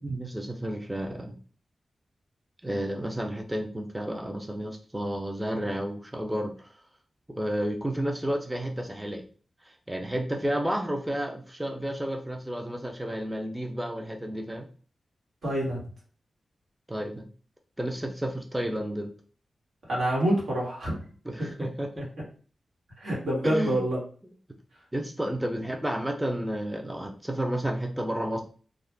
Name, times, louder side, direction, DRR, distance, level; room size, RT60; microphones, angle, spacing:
voice 1, 0.0-1.4 2.6-6.7 7.3-9.2 9.6-14.7 16.9-17.3 17.8-19.1 21.3-22.1 23.4-23.8 24.9-28.4, right 1 dB, 10° right, 3 dB, 0.4 m, -31 dB
voice 2, 15.4-15.8 19.9-21.0 21.4-21.5 23.0-24.0, right 1 dB, 85° right, -4 dB, 1.3 m, -26 dB
2.4 x 2.1 x 3.3 m, 0.40 s
wide cardioid pair, 80°, 0 cm